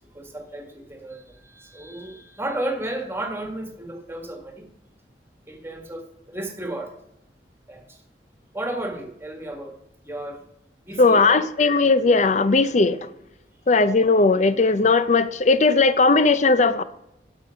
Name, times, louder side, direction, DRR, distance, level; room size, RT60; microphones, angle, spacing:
voice 1, 0.1-4.7 5.5-6.9 7.7-7.8 8.5-9.7 10.1-10.4 10.9-11.4 13.9-14.0, right 1 dB, 15° right, 4 dB, 1.5 m, -33 dB
voice 2, 11.0-13.0 13.7-16.8, left 3 dB, 40° left, 14 dB, 0.5 m, -18 dB
12.0 x 5.5 x 5.0 m, 0.81 s
head